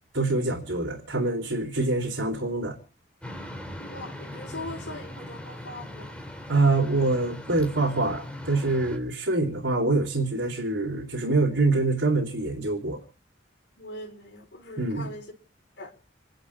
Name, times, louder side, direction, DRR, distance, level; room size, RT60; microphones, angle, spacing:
voice 1, 0.1-2.8 6.5-13.0 14.8-15.1, right 2 dB, 80° right, 3.6 m, -25 dB
sound 1, 3.2-9.0, left 1 dB, 5° left, 3.0 m, -40 dB
voice 2, 3.8-6.1 13.8-15.3 15.8-15.9, left 1 dB, 75° left, 4.6 m, -40 dB
28.0 x 11.5 x 3.6 m
head